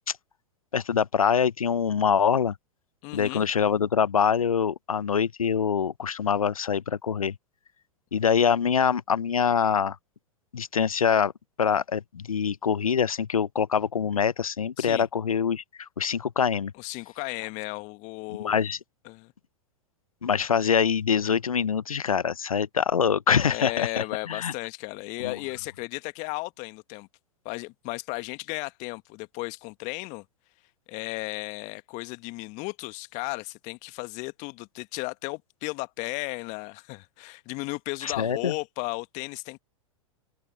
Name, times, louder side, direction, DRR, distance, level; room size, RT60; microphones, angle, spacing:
voice 1, 0.7-2.5 3.1-7.3 8.1-10.0 10.5-11.3 11.6-16.7 18.3-18.8 20.2-24.5 25.2-25.3 38.0-38.5, left 7 dB, 80° left, 0.8 m, -24 dB
voice 2, 3.0-3.5 14.8-15.1 16.7-18.6 19.0-19.3 23.4-27.1 27.4-30.2 30.9-39.6, left 26 dB, 45° left, 1.6 m, -35 dB
open air
figure-of-eight pair, 95°, 18 cm